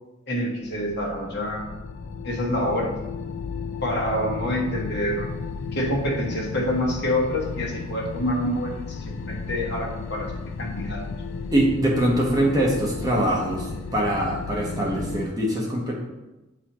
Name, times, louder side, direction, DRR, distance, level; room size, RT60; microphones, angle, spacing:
voice 1, 0.3-1.7 2.2-2.9 3.8-5.3 5.7-11.0, equal, 55° left, -1 dB, 1.3 m, -27 dB
sound 1, 0.6-15.3, left 4 dB, 80° left, 0.4 m, -34 dB
voice 2, 11.5-16.0, right 1 dB, 20° right, -2 dB, 1.1 m, -23 dB
8.7 x 4.1 x 3.0 m, 1.0 s
head